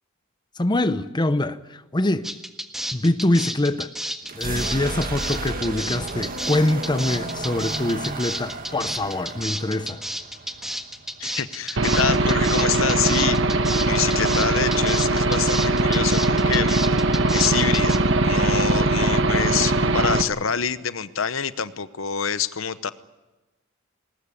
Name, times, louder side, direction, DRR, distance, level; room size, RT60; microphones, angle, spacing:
voice 1, 0.6-2.3 2.9-3.9 4.3-10.0, left 1 dB, 20° left, 0.8 m, -24 dB
sound 1, 2.2-18.0, equal, ahead, 1.5 m, -31 dB
sound 2, 4.2-12.0, right 3 dB, 45° right, 1.8 m, -34 dB
voice 2, 11.2-13.4 13.9-16.8 17.1-22.9, left 7 dB, 80° left, 0.9 m, -26 dB
Aircraft / Engine, 11.8-20.2, right 2 dB, 65° right, 1.3 m, -21 dB
20.5 x 19.5 x 9.9 m
head